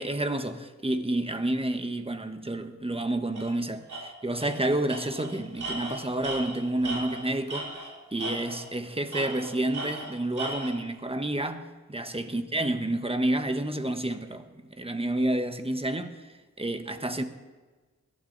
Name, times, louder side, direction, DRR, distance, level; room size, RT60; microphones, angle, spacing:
voice 1, 0.0-7.7 8.1-11.7 11.9-14.5 14.8-17.2, right 1 dB, 20° right, 1.2 m, -29 dB
Tools, 3.4-3.5 3.9-4.0 4.4-4.6 4.9-7.9 8.2-8.7 9.1-10.7, right 2 dB, 90° right, 5.7 m, -36 dB
21.0 x 12.5 x 4.0 m
wide cardioid pair, 65°, 30 cm